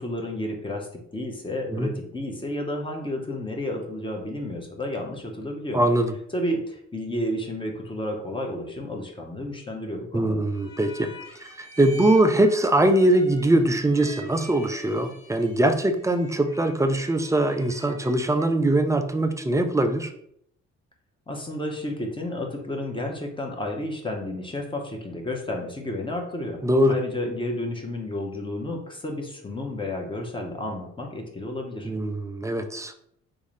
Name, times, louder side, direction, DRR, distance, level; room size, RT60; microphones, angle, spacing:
voice 1, 0.0-5.8 6.3-10.4 21.3-26.6 26.9-31.9, left 1 dB, 15° left, 1 dB, 0.8 m, -31 dB
voice 2, 5.7-6.1 10.1-11.1 11.6-20.1 26.6-27.0 31.8-32.9, right 1 dB, 10° right, 7 dB, 0.3 m, -22 dB
sound 1, 10.5-18.6, equal, 45° left, 0.9 m, -46 dB
3.6 x 2.6 x 3.1 m, 0.70 s
cardioid pair, 90°, 30 cm